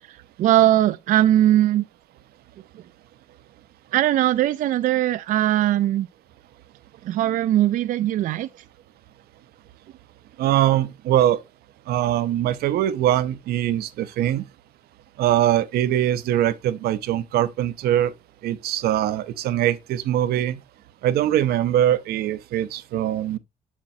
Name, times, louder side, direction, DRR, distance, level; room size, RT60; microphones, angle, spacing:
voice 1, 0.1-1.9 3.9-6.1 7.0-8.5, right 13 dB, 60° right, 0.4 m, -20 dB
voice 2, 10.4-11.4 11.9-14.4 15.2-18.1 18.4-20.6 21.0-23.4, right 12 dB, 85° right, 0.7 m, -22 dB
7.3 x 7.3 x 2.7 m
cardioid pair, 150°, 16 cm